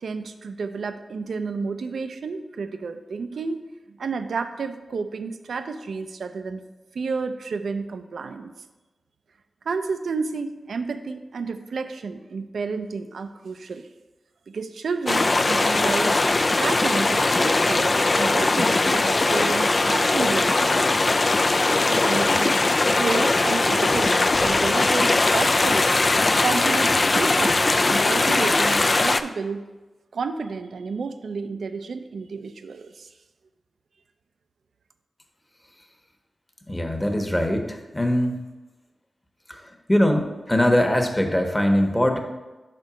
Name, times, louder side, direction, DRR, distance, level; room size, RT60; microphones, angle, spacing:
voice 1, 0.0-3.6 3.9-6.6 6.9-8.5 9.7-13.9 14.5-16.2 16.6-20.8 21.8-26.0 26.4-29.6 30.1-33.1, right 4 dB, 80° right, 9 dB, 0.4 m, -31 dB
sound 1, 15.1-29.2, left 2 dB, 45° left, 0.3 m, -20 dB
voice 2, 36.7-38.4 39.5-42.2, left 1 dB, 15° left, 4 dB, 1.1 m, -22 dB
5.2 x 4.4 x 6.1 m, 1.2 s
cardioid pair, 40°, 0 cm